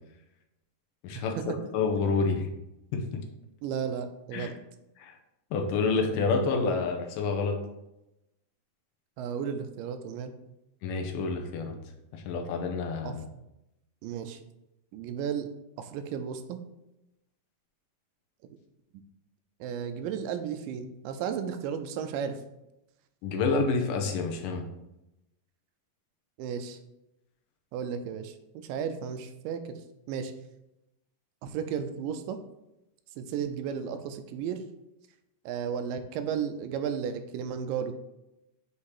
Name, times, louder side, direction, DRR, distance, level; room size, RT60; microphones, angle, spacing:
voice 1, 1.7-2.5 2.9-3.2 4.3-4.5 5.0-5.2 5.5-7.6 10.8-11.8 12.1-13.2 23.2-24.7, left 4 dB, 80° left, 3 dB, 2.4 m, -28 dB
voice 2, 3.6-4.6 9.2-10.3 13.0-13.2 14.0-14.4 14.9-15.5 15.8-16.6 19.6-22.4 26.4-26.8 27.7-29.8 30.1-30.3 31.4-32.4 33.2-34.6 35.5-37.9, right 7 dB, 85° right, 8 dB, 2.2 m, -34 dB
8.2 x 2.9 x 4.8 m, 0.90 s
omnidirectional pair, 3.9 m